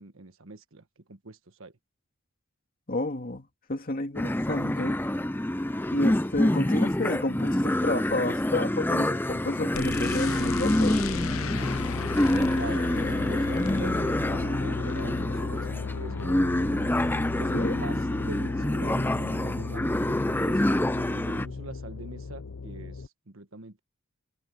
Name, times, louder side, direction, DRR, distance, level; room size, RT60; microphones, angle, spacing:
voice 1, 0.0-1.7 12.3-12.9 13.2-16.3 17.4-23.8, right 3 dB, 75° right, 1.5 m, -43 dB
voice 2, 2.9-5.0 5.9-11.0 17.5-17.7, left 2 dB, 45° left, 2.4 m, -30 dB
sound 1, 4.2-21.5, left 1 dB, 10° left, 0.6 m, -27 dB
sound 2, 9.7-23.1, left 4 dB, 80° left, 0.7 m, -34 dB
head